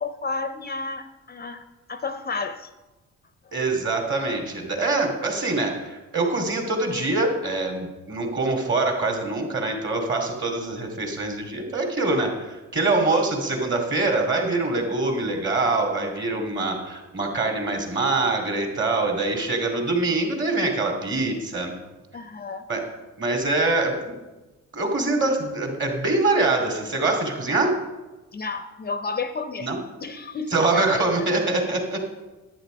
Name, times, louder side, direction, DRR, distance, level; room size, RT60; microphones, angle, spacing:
voice 1, 0.0-1.6 1.9-2.7 22.1-22.6 28.3-29.7 30.0-31.3, left 4 dB, 30° left, 10 dB, 0.6 m, -31 dB
voice 2, 3.5-21.7 22.7-22.9 23.2-24.2 24.7-27.8 29.6-29.8 30.5-32.0, right 2 dB, 40° right, 3 dB, 2.5 m, -24 dB
10.5 x 8.8 x 5.0 m, 1.1 s
cardioid pair, 90°, 30 cm